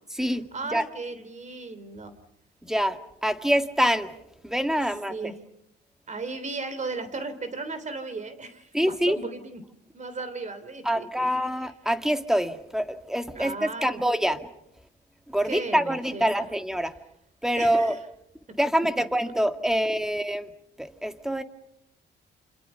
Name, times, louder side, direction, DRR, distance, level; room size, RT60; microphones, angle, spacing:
voice 1, 0.5-2.1 4.8-5.4 6.1-8.7 9.1-9.6 9.9-11.2 13.3-14.0 15.4-16.2 17.6-18.0, right 3 dB, 35° right, 3.3 m, -36 dB
voice 2, 2.7-4.1 4.4-5.1 8.7-9.2 10.8-14.4 15.3-16.9 17.4-18.0 18.6-20.5 20.8-21.4, equal, ahead, 2.0 m, -25 dB
28.5 x 28.0 x 5.7 m
cardioid pair, 90°, 20 cm